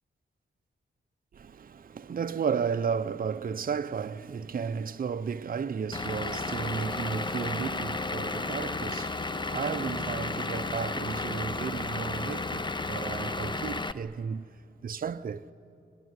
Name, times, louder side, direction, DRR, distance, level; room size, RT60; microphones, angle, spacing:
voice 1, 1.3-14.4 14.8-15.5, right 6 dB, 45° right, 0.6 m, -33 dB
Vehicle / Engine, 5.9-13.9, left 3 dB, 20° left, 0.7 m, -33 dB
25.5 x 20.0 x 9.6 m
wide cardioid pair, 100°, 20 cm